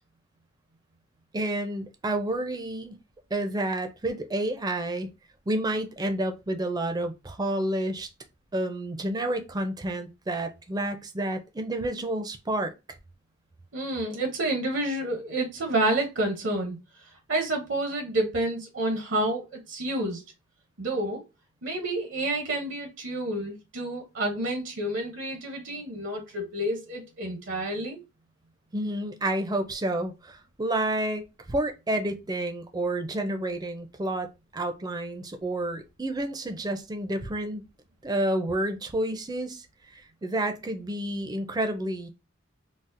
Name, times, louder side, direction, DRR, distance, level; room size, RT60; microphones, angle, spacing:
voice 1, 1.3-3.0 3.3-5.1 5.5-8.1 8.5-12.7 28.7-37.7 38.0-39.7 39.9-42.1, right 1 dB, 20° right, 0.4 m, -30 dB
voice 2, 13.7-16.8 17.3-20.2 20.8-21.2 21.6-28.0, right 1 dB, 70° right, 0.7 m, -29 dB
4.0 x 2.0 x 2.5 m
head